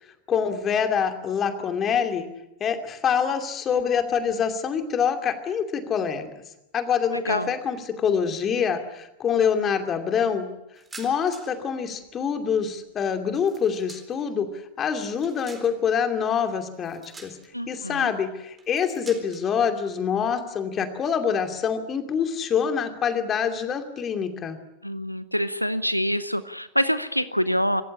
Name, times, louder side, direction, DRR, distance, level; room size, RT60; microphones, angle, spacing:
voice 1, 0.3-2.3 2.6-6.3 6.7-10.5 11.0-14.5 14.8-17.3 17.7-24.6, left 7 dB, 25° left, 7 dB, 2.6 m, -25 dB
sound 1, 10.8-11.7 11.9-14.3 14.8-16.0 16.7-17.7 18.5-19.5, right 4 dB, 15° right, 4.0 m, -47 dB
voice 2, 17.5-18.1 24.8-27.8, equal, 90° left, 14 dB, 0.8 m, -26 dB
26.0 x 15.0 x 9.9 m, 0.91 s
figure-of-eight pair, 90°, 0 cm